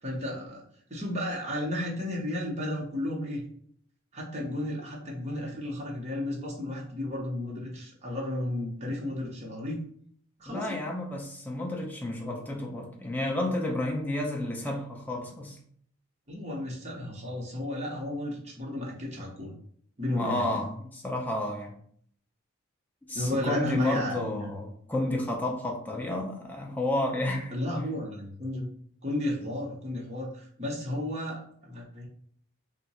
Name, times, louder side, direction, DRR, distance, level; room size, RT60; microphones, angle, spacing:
voice 1, 0.0-0.6 0.9-3.4 4.1-9.8 10.4-10.8 16.3-19.5 20.0-20.6 23.1-24.6 27.5-28.7 29.0-32.1, left 1 dB, 30° right, -2 dB, 0.7 m, -33 dB
voice 2, 10.5-15.6 20.1-21.8 23.1-27.5, left 1 dB, 10° left, 0 dB, 0.4 m, -31 dB
2.7 x 2.1 x 4.0 m, 0.62 s
head